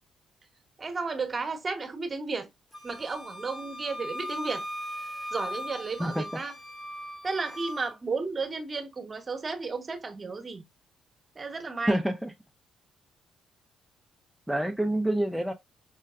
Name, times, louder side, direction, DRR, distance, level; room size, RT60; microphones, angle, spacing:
voice 1, 0.8-2.5 2.8-4.6 5.3-6.5 7.2-10.6 11.4-12.0, right 4 dB, 35° right, 0.9 m, -33 dB
Wind instrument woodwind instrument, 2.7-7.9, left 1 dB, 15° left, 0.8 m, -39 dB
voice 2, 11.9-12.3 14.5-15.5, right 1 dB, ahead, 0.5 m, -27 dB
5.5 x 2.2 x 2.4 m
cardioid pair, 80°, 0 cm